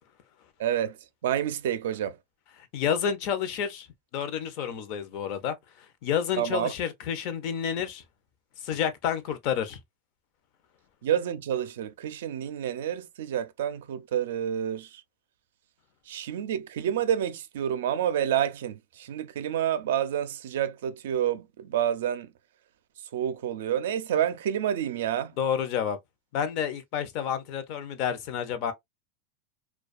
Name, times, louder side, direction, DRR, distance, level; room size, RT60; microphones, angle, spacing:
voice 1, 0.6-1.0 1.2-2.2 6.4-6.7 11.0-14.9 16.1-22.3 23.1-25.3, right 10 dB, 80° right, 0.4 m, -28 dB
voice 2, 2.7-3.9 4.1-5.6 6.0-8.0 8.6-9.8 25.4-26.0 26.3-28.7, left 8 dB, 50° left, 0.5 m, -29 dB
2.3 x 2.2 x 2.4 m
supercardioid pair, 135°, 0 cm